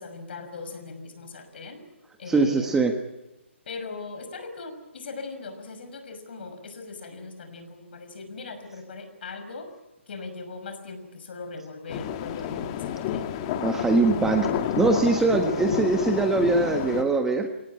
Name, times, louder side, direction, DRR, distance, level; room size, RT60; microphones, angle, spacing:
voice 1, 0.0-1.8 2.2-2.8 3.7-9.7 10.1-13.5 15.2-15.4, left 3 dB, 55° left, 8 dB, 6.0 m, -39 dB
voice 2, 2.3-2.9 13.6-17.5, right 3 dB, 5° right, 5 dB, 1.4 m, -22 dB
sound 1, 11.9-17.0, left 9 dB, 25° left, 1.5 m, -30 dB
24.5 x 19.0 x 8.8 m, 1.0 s
hypercardioid pair, 155°, 7 cm